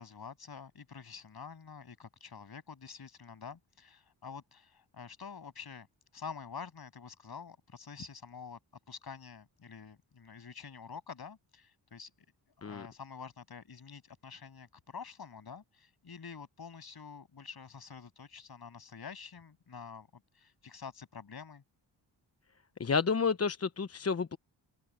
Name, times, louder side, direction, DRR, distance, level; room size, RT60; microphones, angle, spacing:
voice 1, 0.0-5.9 6.1-8.6 8.9-12.1 12.6-21.6, left 6 dB, 55° left, 8.0 m, -47 dB
voice 2, 22.8-24.4, left 5 dB, 30° left, 1.0 m, -30 dB
cardioid pair, 60°, 46 cm